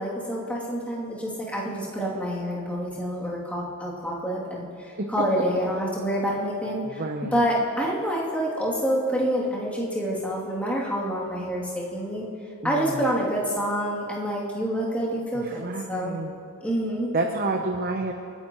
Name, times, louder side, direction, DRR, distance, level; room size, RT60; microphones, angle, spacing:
voice 1, 0.0-7.0 7.3-12.2 12.6-16.2 16.6-17.1, equal, 5° left, -7 dB, 2.8 m, -27 dB
voice 2, 6.8-7.4 12.6-13.1 15.4-16.4 17.1-18.1, right 2 dB, 45° right, 3 dB, 0.8 m, -29 dB
29.0 x 10.0 x 3.1 m, 2.5 s
head